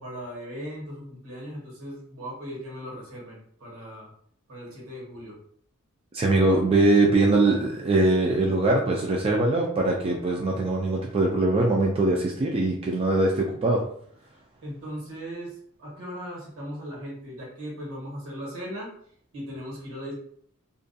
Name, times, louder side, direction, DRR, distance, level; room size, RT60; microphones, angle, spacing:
voice 1, 0.0-4.1 4.5-5.4 14.6-18.9 19.3-20.1, equal, 70° right, -4 dB, 1.2 m, -38 dB
voice 2, 6.1-13.8, right 2 dB, 25° right, -1 dB, 0.3 m, -22 dB
2.4 x 2.2 x 2.6 m, 0.62 s
head